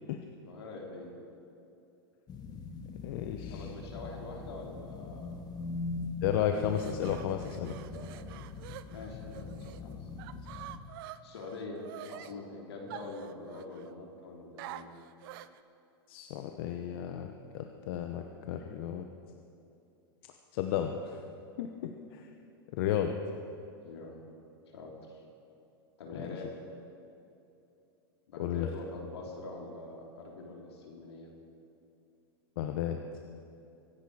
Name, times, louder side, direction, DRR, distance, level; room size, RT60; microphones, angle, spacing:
voice 1, 0.5-1.1 3.5-5.4 7.8-8.4 8.9-10.1 11.2-14.9 23.8-24.2 24.7-25.2 26.0-26.5 28.3-31.3, left 2 dB, 85° left, -1 dB, 3.4 m, -44 dB
sound 1, 2.3-10.8, left 4 dB, 30° left, 1.5 m, -41 dB
voice 2, 3.0-3.7 6.2-7.8 16.1-19.1 20.5-21.2 21.6-22.3 22.7-23.1 26.2-26.3 28.4-28.7 32.6-33.0, left 10 dB, 65° left, 5 dB, 1.0 m, -33 dB
sound 2, 6.6-9.8 10.2-12.3 12.9-13.9 14.6-15.6, right 13 dB, 60° right, 0.7 m, -47 dB
24.0 x 10.5 x 4.9 m, 2.8 s
hypercardioid pair, 115°, 13 cm